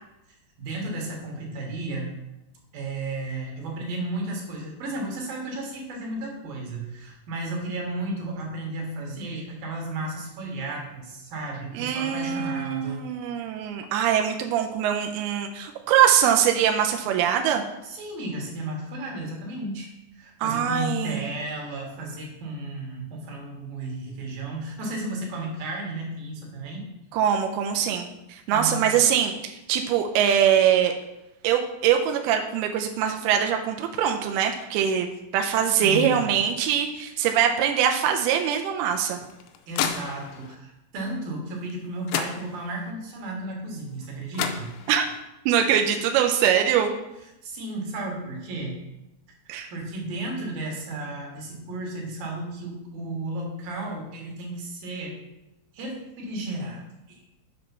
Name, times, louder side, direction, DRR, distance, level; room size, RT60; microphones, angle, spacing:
voice 1, 0.6-2.2 2.7-13.1 17.8-19.9 20.2-26.9 28.5-29.0 35.7-36.2 39.7-44.7 47.4-48.8 49.7-55.1 55.7-57.2, right 2 dB, 60° right, -1 dB, 3.1 m, -33 dB
voice 2, 11.7-17.6 20.4-21.2 27.1-30.9 31.4-39.2 44.9-45.1 45.5-46.9 49.5-49.7, right 9 dB, 85° right, 4 dB, 2.2 m, -23 dB
sound 1, 38.9-40.6 41.7-41.8 42.1-42.9 44.0-44.1 44.3-45.2, left 8 dB, 90° left, 3.0 m, -32 dB
7.1 x 5.2 x 5.7 m, 0.92 s
omnidirectional pair, 5.1 m